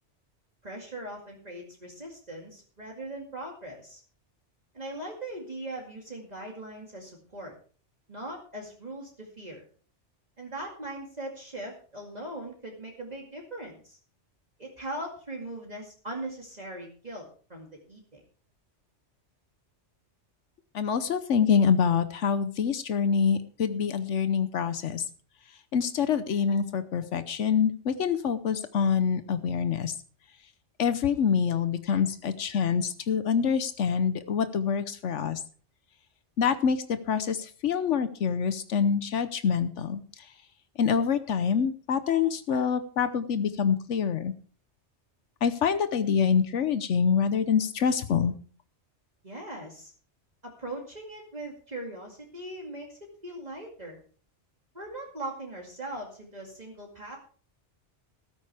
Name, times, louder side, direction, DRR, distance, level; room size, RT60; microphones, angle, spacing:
voice 1, 0.6-4.0 4.7-7.5 8.1-9.6 10.4-14.0 14.6-18.2 49.2-49.9 50.4-54.0 54.7-57.2, right 1 dB, 35° right, -1 dB, 2.4 m, -40 dB
voice 2, 20.7-25.1 25.7-29.9 30.8-35.4 36.4-40.3 40.8-44.3 45.4-48.3, left 7 dB, 85° left, 12 dB, 1.2 m, -26 dB
14.0 x 13.0 x 3.4 m, 0.42 s
omnidirectional pair, 1.2 m